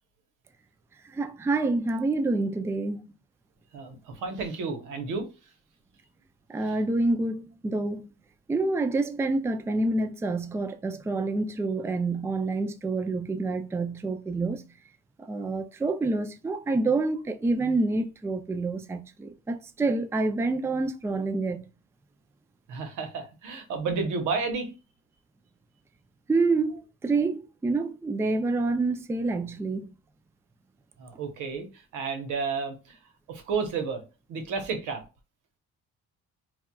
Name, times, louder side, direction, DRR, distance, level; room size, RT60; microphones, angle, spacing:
voice 1, 1.1-3.0 6.5-8.1 8.5-14.6 15.3-21.6 26.3-29.9, right 3 dB, 10° right, 0.3 m, -27 dB
voice 2, 3.7-5.3 6.6-6.8 22.7-24.7 31.0-33.0 33.3-34.0 34.3-35.0, right 4 dB, 90° right, 0.9 m, -32 dB
4.1 x 2.3 x 2.2 m
cardioid pair, 90°, 30 cm